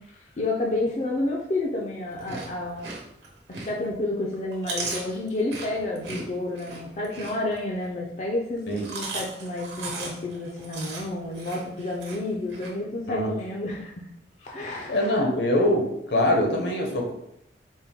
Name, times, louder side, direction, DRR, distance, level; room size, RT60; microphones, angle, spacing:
voice 1, 0.0-2.9 3.5-8.6 8.9-14.0 14.4-15.1, left 2 dB, 40° left, -2 dB, 0.4 m, -30 dB
Chewing mastication, 2.1-3.9 4.3-7.9 8.6-12.7, right 3 dB, 75° right, 1.1 m, -37 dB
voice 2, 14.9-17.1, left 1 dB, 70° left, 1 dB, 0.8 m, -23 dB
4.3 x 2.1 x 3.5 m, 0.78 s
head